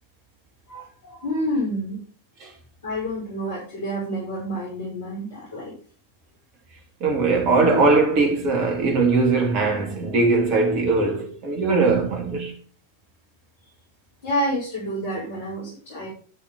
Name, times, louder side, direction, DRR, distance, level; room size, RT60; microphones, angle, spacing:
voice 1, 0.7-2.0 2.8-5.7 14.2-16.1, equal, 60° left, 5.8 m, -28 dB
voice 2, 7.0-12.5, right 3 dB, 40° right, 3.5 m, -20 dB
14.0 x 5.9 x 5.5 m
figure-of-eight pair, 90°, 0 cm